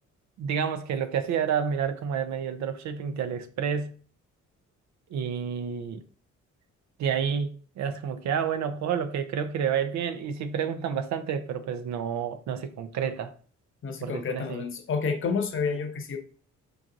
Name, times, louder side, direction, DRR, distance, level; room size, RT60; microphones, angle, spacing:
voice 1, 0.4-3.9 5.1-6.0 7.0-13.3 14.0-14.7, right 7 dB, 65° right, 0.5 m, -29 dB
voice 2, 13.8-16.2, left 5 dB, 45° left, 0.6 m, -29 dB
4.6 x 2.6 x 2.5 m
cardioid pair, 90°, 30 cm